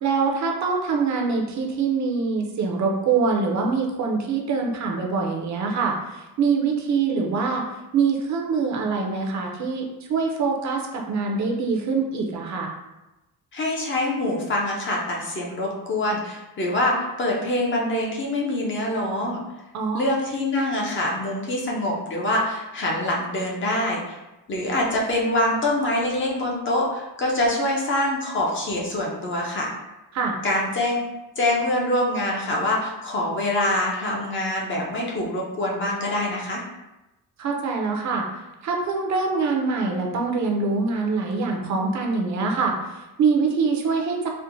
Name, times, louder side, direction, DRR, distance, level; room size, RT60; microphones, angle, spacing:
voice 1, 0.0-7.6 7.9-12.7 19.7-20.1 30.1-30.4 37.4-44.3, right 4 dB, 50° right, 1 dB, 0.5 m, -24 dB
voice 2, 13.5-19.4 19.9-24.2 24.5-29.7 30.4-31.0 31.4-36.6, left 1 dB, 35° left, -2 dB, 0.6 m, -25 dB
4.3 x 2.1 x 2.6 m, 1.0 s
cardioid pair, 160°, 36 cm